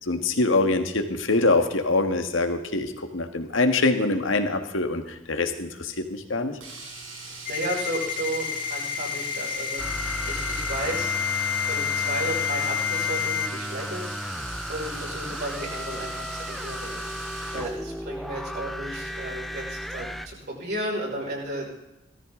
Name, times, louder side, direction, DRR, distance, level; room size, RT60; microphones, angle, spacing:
voice 1, 0.0-6.6, left 2 dB, 75° left, 6 dB, 1.6 m, -24 dB
Domestic sounds home sounds, 6.6-17.8 20.0-20.1 20.4-20.5, right 3 dB, 90° right, 5.9 m, -40 dB
voice 2, 7.2-11.1 11.6-14.0 14.7-17.0 17.5-21.7, right 1 dB, 55° right, -3 dB, 5.5 m, -34 dB
Ringtone, 7.5-13.5, left 9 dB, 45° left, 1.3 m, -29 dB
sound 1, 9.8-20.3, equal, ahead, 0.6 m, -34 dB
18.0 x 14.0 x 3.8 m, 0.93 s
head